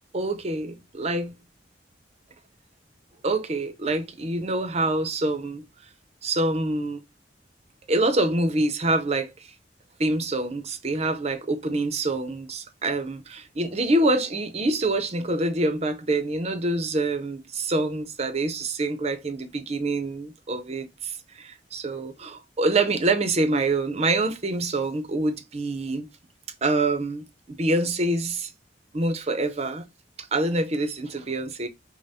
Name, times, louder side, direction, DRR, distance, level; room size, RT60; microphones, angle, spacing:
voice 1, 0.1-1.3 3.2-5.6 6.2-7.0 7.9-9.5 10.0-26.1 26.6-28.5 28.9-29.9 30.2-31.7, right 2 dB, 35° right, 0.6 m, -26 dB
5.3 x 2.1 x 2.6 m
head